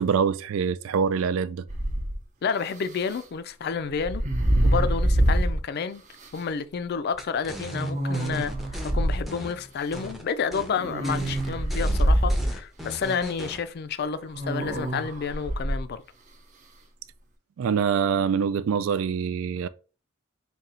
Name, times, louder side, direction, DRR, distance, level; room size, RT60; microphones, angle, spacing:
voice 1, 0.0-1.7 17.6-19.7, right 6 dB, 80° right, 0.3 m, -25 dB
sound 1, 1.7-2.2 3.9-5.6 6.2-6.3 7.7-9.2 10.7-12.6 14.3-15.8, right 1 dB, 40° right, 0.7 m, -25 dB
voice 2, 2.4-4.2 4.6-6.0 6.3-8.5 8.9-16.0, left 6 dB, 50° left, 0.4 m, -30 dB
sound 2, 7.2-8.9 9.3-10.2 10.5-10.7 11.0-13.6, equal, ahead, 0.6 m, -38 dB
3.8 x 2.3 x 4.2 m
head